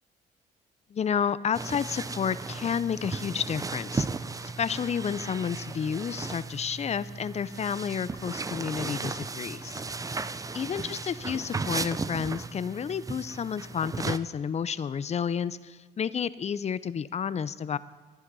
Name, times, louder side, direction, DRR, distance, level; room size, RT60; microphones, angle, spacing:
voice 1, 0.9-4.1 4.4-9.8 10.5-17.8, left 7 dB, 35° left, 17 dB, 0.5 m, -31 dB
sound 1, 1.5-14.2, right 4 dB, 20° right, 0.5 m, -35 dB
13.0 x 10.5 x 5.4 m, 1.4 s
supercardioid pair, 75°, 19 cm